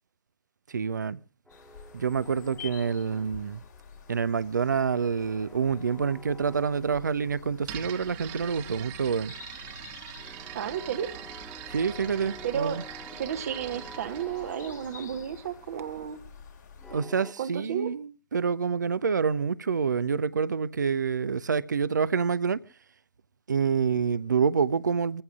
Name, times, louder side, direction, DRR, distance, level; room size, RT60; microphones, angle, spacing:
voice 1, 0.7-1.2 1.9-3.6 4.1-9.3 11.7-12.8 16.9-22.6 23.5-25.2, right 6 dB, 70° right, 0.6 m, -27 dB
sound 1, 1.5-17.0, left 7 dB, 65° left, 2.8 m, -50 dB
sound 2, 1.5-4.0 4.3-7.9 8.2-17.3, left 1 dB, 5° left, 1.4 m, -50 dB
sound 3, 7.6-15.4, right 11 dB, 35° right, 1.3 m, -43 dB
voice 2, 10.5-11.1 12.4-12.8 13.2-16.2 17.4-17.9, right 9 dB, 55° right, 1.0 m, -32 dB
26.0 x 14.5 x 2.4 m
figure-of-eight pair, 110°, 10 cm